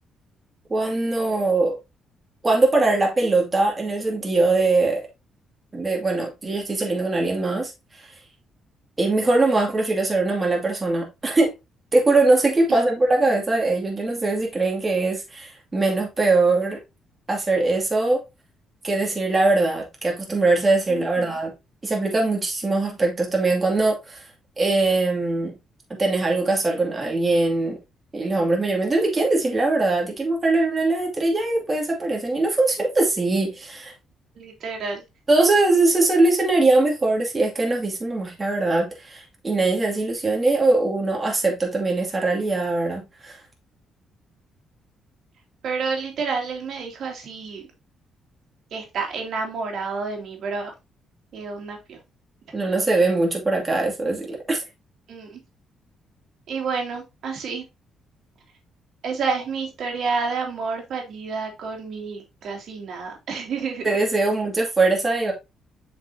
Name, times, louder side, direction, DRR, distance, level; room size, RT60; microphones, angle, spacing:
voice 1, 0.7-1.8 2.4-5.0 5.7-7.7 8.0-8.1 9.0-11.5 11.9-16.8 17.3-18.2 18.8-21.5 21.8-24.2 24.6-25.5 26.0-27.8 28.1-33.9 35.3-43.4 52.5-54.6 63.8-65.3, right 2 dB, 25° right, 2.3 m, -21 dB
voice 2, 20.9-21.4 34.4-35.0 45.6-47.6 48.7-50.7 51.3-52.0 55.1-55.4 56.5-57.6 59.0-63.9, right 4 dB, 70° right, 2.5 m, -29 dB
7.3 x 5.3 x 2.7 m
cardioid pair, 90°, 0 cm